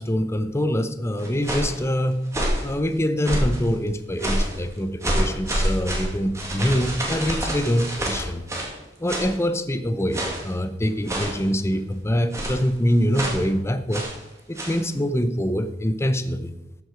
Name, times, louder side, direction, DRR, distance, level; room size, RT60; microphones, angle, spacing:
voice 1, 0.0-2.2 2.6-8.5 9.0-14.1 14.5-16.5, equal, 15° left, 10 dB, 0.6 m, -24 dB
plastic bag, 1.2-1.8 2.3-2.7 3.2-3.6 4.2-4.6 5.0-8.8 9.1-9.4 10.1-10.5 11.1-11.5 12.3-12.7 13.1-13.5 13.9-14.2 14.5-14.8, right 1 dB, 15° right, 2.0 m, -27 dB
13.0 x 6.0 x 4.9 m, 1.0 s
head